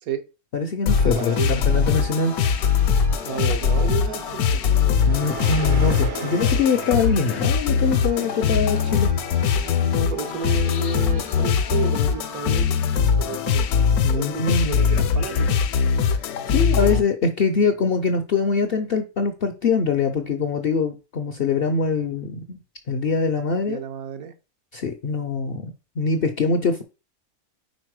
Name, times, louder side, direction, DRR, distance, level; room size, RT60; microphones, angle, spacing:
voice 1, 0.5-2.3 5.1-9.1 14.0-14.8 16.0-16.2 16.5-22.6 22.9-23.8 24.7-26.8, left 4 dB, 60° left, 7 dB, 0.6 m, -23 dB
sound 1, 0.9-17.0, left 6 dB, 80° left, 1.1 m, -21 dB
sound 2, 0.9-13.3, right 2 dB, 30° right, 0.4 m, -41 dB
voice 2, 1.1-1.6 3.2-4.7 9.9-13.7 14.1-15.6 16.6-16.7 23.7-24.3, right 7 dB, 75° right, 7 dB, 1.3 m, -32 dB
sound 3, 4.2-8.5, right 7 dB, 60° right, 0.9 m, -37 dB
5.2 x 4.1 x 4.7 m, 0.31 s
omnidirectional pair, 1.6 m